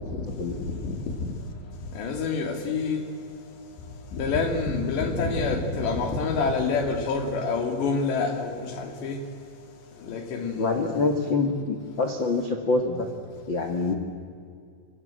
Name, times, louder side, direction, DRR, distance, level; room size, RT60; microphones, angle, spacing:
voice 1, 0.6-1.2 1.9-3.0 4.1-9.2 10.0-10.8, left 4 dB, 65° left, 5 dB, 4.8 m, -27 dB
voice 2, 10.6-13.1 13.5-13.9, left 3 dB, 85° left, 4 dB, 1.0 m, -25 dB
27.0 x 25.0 x 7.8 m, 2.3 s
omnidirectional pair, 5.5 m